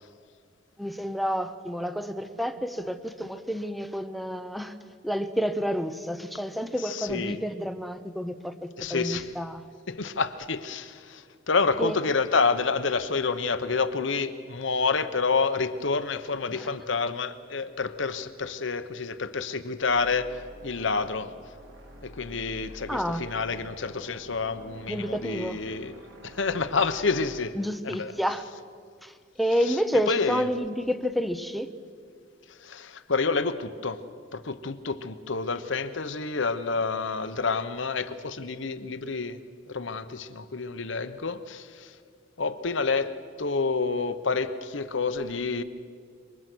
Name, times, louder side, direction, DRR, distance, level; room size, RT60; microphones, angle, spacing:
voice 1, 0.8-4.8 5.0-9.6 11.8-11.9 16.5-16.7 22.9-23.3 24.9-25.6 27.6-28.4 29.0-31.7, equal, ahead, 0.9 m, -29 dB
voice 2, 6.8-7.4 8.8-9.3 9.9-21.3 22.0-25.9 26.2-27.6 27.8-28.1 29.6-29.8 30.1-30.5 32.5-34.0 34.3-39.4 39.7-42.0 42.4-45.6, left 4 dB, 65° left, 1.0 m, -28 dB
sound 1, 19.9-27.4, equal, 75° right, 3.2 m, -48 dB
27.0 x 24.0 x 6.2 m
head